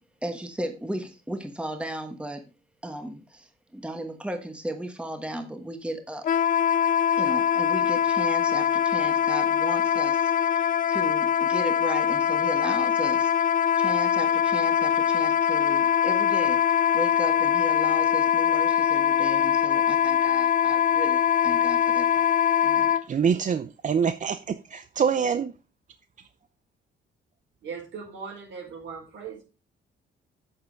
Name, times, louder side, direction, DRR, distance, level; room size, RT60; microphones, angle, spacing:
voice 1, 0.2-2.4 2.8-6.2 7.2-13.5 13.8-16.6 16.9-22.2 22.6-22.9, right 1 dB, 5° right, 1.3 m, -35 dB
Wind instrument woodwind instrument, 6.2-23.0, left 9 dB, 45° left, 0.4 m, -23 dB
voice 2, 23.1-25.5, right 7 dB, 40° right, 0.6 m, -25 dB
voice 3, 27.6-29.4, right 6 dB, 70° right, 4.8 m, -39 dB
8.5 x 7.2 x 3.9 m
cardioid pair, 90°, 20 cm